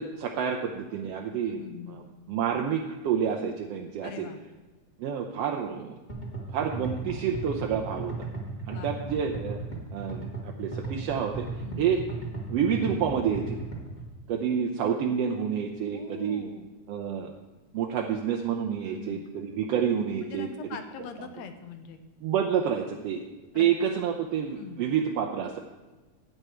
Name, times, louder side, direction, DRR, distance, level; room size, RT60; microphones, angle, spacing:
voice 1, 0.0-1.6 1.9-2.0 2.3-4.3 5.0-6.0 6.5-8.3 8.7-9.6 9.9-11.5 11.8-12.0 12.5-13.6 14.3-16.5 16.9-17.3 17.7-20.5 22.2-23.2 23.5-25.6, right 8 dB, 70° right, 2 dB, 1.6 m, -28 dB
voice 2, 1.4-2.0 4.0-4.4 8.7-8.9 11.6-11.9 15.9-16.7 18.9-19.2 20.2-22.0 23.5-23.7 24.6-24.9, left 7 dB, 70° left, 8 dB, 2.0 m, -42 dB
sound 1, 6.1-14.1, right 3 dB, 20° left, 1.8 m, -36 dB
13.5 x 8.9 x 4.4 m, 1.2 s
omnidirectional pair, 3.3 m